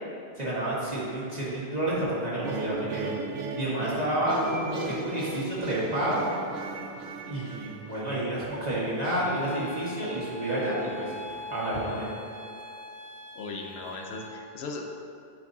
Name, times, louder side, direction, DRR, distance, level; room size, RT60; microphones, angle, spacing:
voice 1, 0.4-3.1 3.6-6.3 7.3-12.1, right 1 dB, 40° right, -8 dB, 1.8 m, -30 dB
sound 1, 2.4-9.5, right 4 dB, 85° right, 0.9 m, -38 dB
sound 2, 4.4-7.6, left 2 dB, 40° left, 0.7 m, -39 dB
sound 3, 9.2-14.3, left 2 dB, 5° right, 1.2 m, -43 dB
voice 2, 13.3-14.8, left 3 dB, 80° left, 1 dB, 1.0 m, -38 dB
10.0 x 4.6 x 2.8 m, 2.5 s
omnidirectional pair, 1.1 m